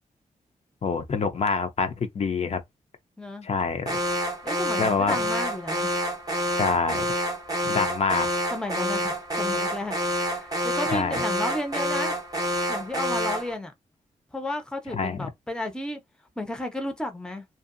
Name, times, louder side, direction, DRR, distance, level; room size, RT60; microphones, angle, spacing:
voice 1, 0.8-2.6 3.4-4.0 4.8-5.2 6.6-7.1 7.6-8.3 10.9-11.2 14.9-15.3, left 5 dB, 45° left, 0.5 m, -26 dB
voice 2, 3.2-3.5 4.4-5.9 8.5-12.2 12.7-13.7 14.3-16.0 16.4-17.4, left 1 dB, 5° left, 0.6 m, -33 dB
Alarm, 3.9-13.5, equal, 25° right, 0.8 m, -28 dB
2.7 x 2.4 x 2.5 m
wide cardioid pair, 110°, 15 cm